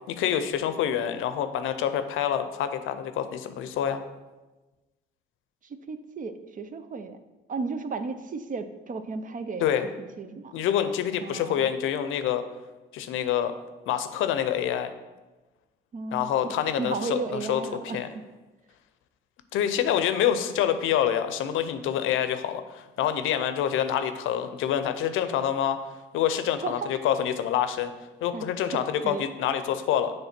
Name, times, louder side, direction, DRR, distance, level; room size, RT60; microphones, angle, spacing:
voice 1, 0.1-4.0 9.6-9.9 10.5-12.4 12.9-13.5 13.9-14.9 16.1-18.1 19.5-25.8 26.1-27.9 28.2-30.1, left 9 dB, 85° left, 10 dB, 0.6 m, -26 dB
voice 2, 5.6-7.2 7.5-9.7 10.2-10.5 11.2-11.7 15.9-18.0 26.6-26.9 28.3-29.3, right 4 dB, 40° right, 10 dB, 0.6 m, -34 dB
7.1 x 3.2 x 5.9 m, 1.1 s
cardioid pair, 90°, 20 cm